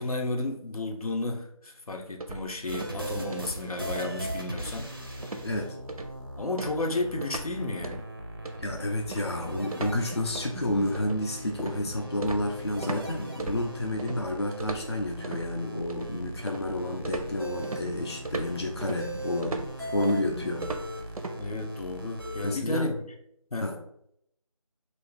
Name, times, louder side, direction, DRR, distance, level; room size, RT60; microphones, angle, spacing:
voice 1, 0.0-4.9 6.4-8.0 21.3-22.9 23.5-23.7, left 2 dB, 85° left, 3 dB, 0.6 m, -32 dB
sound 1, 2.2-3.0 3.3-3.6 4.0-4.2 4.6-5.0 5.2-5.5 5.9-6.2 6.6-7.5 7.8-8.1 8.4-13.0 13.4-14.2 14.6-15.4 15.9-16.7 17.0-21.4, right 2 dB, 90° right, 0.5 m, -37 dB
sound 2, 2.7-22.5, right 1 dB, 40° right, 0.4 m, -39 dB
voice 2, 5.4-5.8 8.6-20.7 22.4-22.9 23.6-23.8, left 1 dB, 50° left, 2 dB, 0.4 m, -30 dB
2.5 x 2.4 x 3.7 m, 0.75 s
figure-of-eight pair, 175°, 18 cm